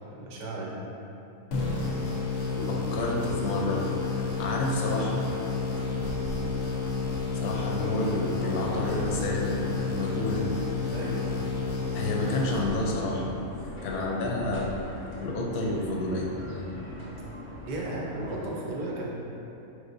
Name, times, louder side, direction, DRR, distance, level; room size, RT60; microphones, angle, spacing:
voice 1, 0.1-0.9 6.0-6.2 10.9-11.4 17.7-19.1, right 1 dB, 60° right, -3 dB, 0.5 m, -35 dB
sound 1, 1.5-13.2, left 4 dB, 60° left, 0.8 m, -31 dB
sound 2, 2.4-18.5, equal, 40° left, 0.4 m, -40 dB
voice 2, 2.7-5.3 7.3-10.5 11.9-13.3 13.6-14.7 15.2-16.6, left 2 dB, 80° left, -1 dB, 1.1 m, -30 dB
5.3 x 3.2 x 2.5 m, 2.9 s
omnidirectional pair, 1.7 m